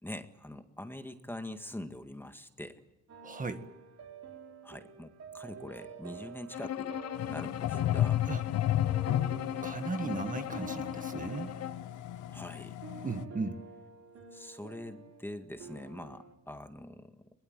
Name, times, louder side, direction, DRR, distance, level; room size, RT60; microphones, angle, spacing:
voice 1, 0.0-2.8 4.6-8.3 12.3-12.8 14.3-17.3, left 1 dB, 5° left, 7 dB, 1.9 m, -44 dB
sound 1, 3.1-16.3, right 5 dB, 55° right, 4.7 m, -49 dB
voice 2, 3.2-3.6 8.3-8.4 9.6-11.5 13.0-13.6, right 3 dB, 25° right, 8 dB, 1.7 m, -36 dB
Bowed string instrument, 6.5-11.9, left 11 dB, 55° left, 1.0 m, -39 dB
sound 2, 7.2-13.2, left 12 dB, 80° left, 1.0 m, -33 dB
22.5 x 22.0 x 9.3 m, 0.97 s
cardioid pair, 90°, 30 cm